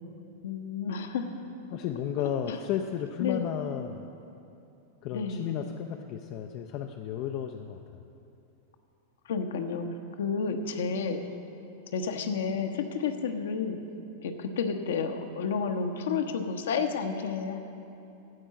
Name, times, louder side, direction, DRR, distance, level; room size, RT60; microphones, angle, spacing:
voice 1, 0.4-1.4 2.5-2.6 3.2-3.5 5.1-5.8 9.2-9.9 10.2-11.2 11.9-13.8 14.2-17.6, left 5 dB, 60° left, 6 dB, 0.9 m, -31 dB
voice 2, 1.7-4.1 5.0-7.8, left 9 dB, 45° left, 5 dB, 0.5 m, -33 dB
15.5 x 5.4 x 7.5 m, 2.8 s
figure-of-eight pair, 90°, 0 cm